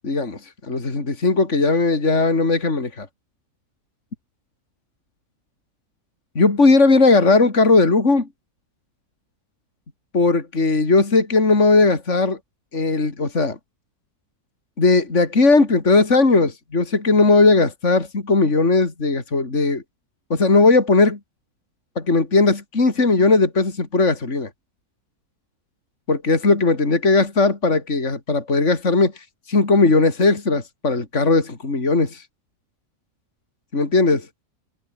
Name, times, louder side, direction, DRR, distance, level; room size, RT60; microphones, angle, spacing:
voice 1, 0.0-3.1 6.4-8.3 10.1-12.4 12.7-13.6 14.8-19.8 20.3-21.2 22.0-24.5 26.1-29.1 29.5-32.2 33.7-34.3, left 3 dB, 50° left, 3.7 m, -18 dB
omnidirectional pair, 1.6 m